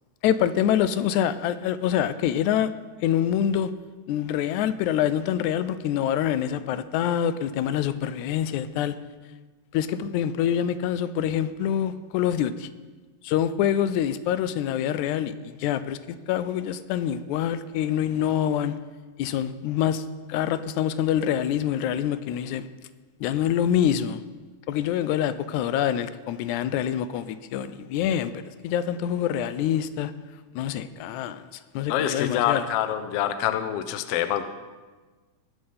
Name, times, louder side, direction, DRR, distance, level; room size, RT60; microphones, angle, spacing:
voice 1, 0.2-2.7 3.0-3.7 4.1-9.0 9.7-12.7 13.2-16.0 16.3-18.8 19.2-20.0 20.3-22.7 23.2-24.2 24.7-28.3 28.6-30.1 30.6-31.4 31.7-32.7, left 10 dB, 85° left, 2.0 m, -25 dB
voice 2, 31.9-34.4, left 11 dB, 70° left, 1.5 m, -26 dB
19.5 x 6.6 x 5.5 m
omnidirectional pair, 3.3 m